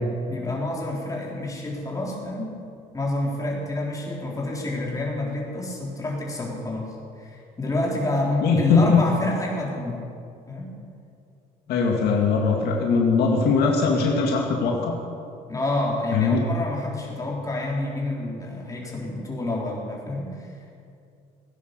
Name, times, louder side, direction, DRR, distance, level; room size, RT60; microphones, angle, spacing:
voice 1, 0.3-2.6 2.9-10.1 10.5-10.7 15.5-20.5, left 1 dB, 20° left, -3 dB, 3.8 m, -28 dB
voice 2, 8.4-9.0 11.7-15.0 16.1-16.4, left 4 dB, 70° left, 0 dB, 2.1 m, -20 dB
17.5 x 10.0 x 6.7 m, 2.4 s
cardioid pair, 110°, 17 cm